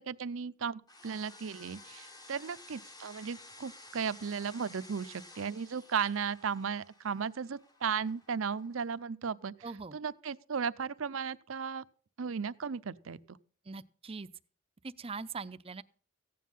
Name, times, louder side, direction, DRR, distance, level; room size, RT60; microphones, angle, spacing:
voice 1, 0.0-9.5 9.9-11.8 12.2-13.4, right 6 dB, 70° right, 15 dB, 0.6 m, -35 dB
sound 1, 0.9-9.0, left 2 dB, 20° left, 1.1 m, -54 dB
voice 2, 9.6-10.0 13.7-14.3 14.8-15.8, right 4 dB, 30° right, 13 dB, 0.6 m, -41 dB
15.5 x 9.4 x 5.5 m, 0.41 s
head